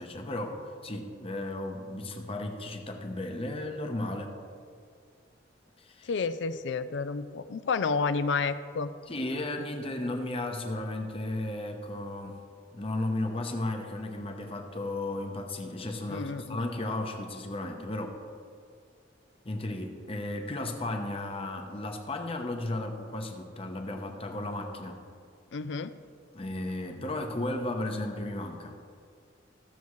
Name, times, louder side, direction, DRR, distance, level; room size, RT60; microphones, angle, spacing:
voice 1, 0.0-4.3 5.8-6.1 9.1-12.4 12.7-18.2 19.4-25.0 26.3-28.7, left 1 dB, 30° left, 4 dB, 0.9 m, -34 dB
voice 2, 6.1-8.9 16.1-16.7 25.5-25.9, left 4 dB, 70° left, 13 dB, 0.4 m, -30 dB
15.5 x 6.9 x 3.2 m, 2.2 s
head